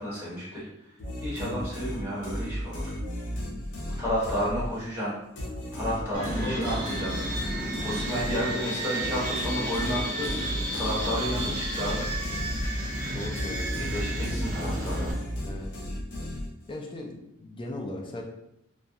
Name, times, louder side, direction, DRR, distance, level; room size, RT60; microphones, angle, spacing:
voice 1, 0.0-2.9 4.0-5.1 5.7-7.1 7.8-12.1 13.8-15.2, equal, 15° right, -9 dB, 1.1 m, -32 dB
sound 1, 1.0-5.0 5.4-13.0 13.4-16.8, equal, 65° left, 0.6 m, -35 dB
voice 2, 1.4-1.7 6.4-6.7 13.1-13.8 15.4-15.9 16.7-18.2, left 1 dB, 25° left, 1 dB, 0.3 m, -37 dB
sound 2, 6.1-15.1, right 1 dB, 45° right, 0.6 m, -32 dB
2.3 x 2.1 x 2.7 m, 0.82 s
head